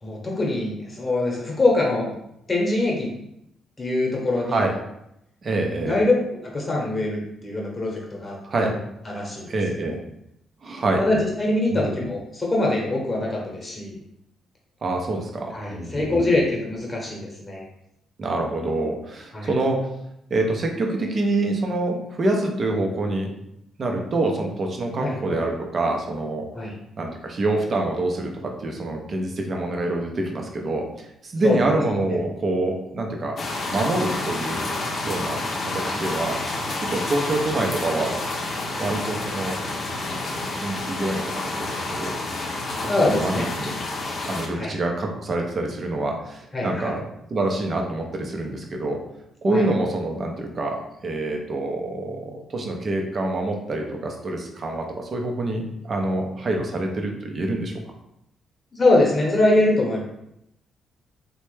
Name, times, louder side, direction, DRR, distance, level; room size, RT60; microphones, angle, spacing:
voice 1, 0.0-2.1 2.5-3.1 3.8-4.6 5.8-6.1 6.4-8.8 9.0-9.5 9.8-9.9 11.0-14.0 15.5-17.6 19.3-19.5 25.0-25.4 26.5-26.7 31.4-31.7 32.1-32.2 42.9-43.5 44.5-44.7 46.5-46.9 49.5-49.6 58.7-60.0, left 2 dB, 25° left, -2 dB, 1.0 m, -23 dB
voice 2, 5.4-6.0 8.5-8.7 9.4-10.0 10.6-11.0 11.7-11.9 14.8-16.4 18.2-19.9 20.3-23.3 23.8-26.4 27.0-33.4 33.7-34.7 35.0-35.4 35.7-36.4 36.9-38.1 38.8-39.6 40.1-42.2 42.8-43.7 44.3-47.0 47.3-49.0 49.4-57.7, right 2 dB, 45° right, 2 dB, 0.6 m, -26 dB
sound 1, 33.4-44.5, left 2 dB, 45° left, 0.6 m, -29 dB
3.1 x 2.2 x 3.2 m, 0.80 s
cardioid pair, 90°, 0 cm